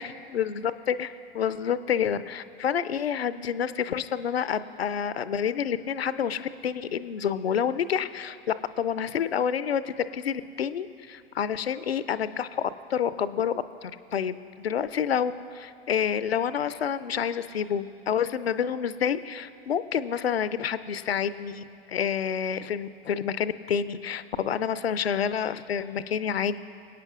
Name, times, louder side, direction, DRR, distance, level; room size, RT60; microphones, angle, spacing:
voice 1, 0.3-26.6, left 8 dB, 80° left, 14 dB, 0.5 m, -28 dB
26.0 x 8.8 x 2.4 m, 2.5 s
figure-of-eight pair, 90°, 30 cm